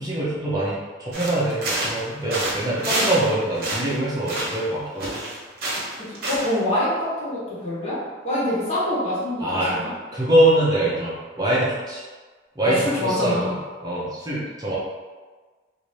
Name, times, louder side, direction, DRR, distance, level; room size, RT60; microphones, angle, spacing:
voice 1, 0.0-5.2 9.4-9.8 10.1-12.0 12.6-14.7, right 1 dB, 20° right, -7 dB, 0.7 m, -23 dB
sound 1, 1.1-2.0 2.3-3.3 3.5-4.7 5.0-6.6, right 1 dB, 50° right, 0.8 m, -27 dB
voice 2, 6.3-8.0 8.2-9.9 12.7-13.5, left 1 dB, 35° left, -9 dB, 1.0 m, -25 dB
2.7 x 2.6 x 3.1 m, 1.4 s
head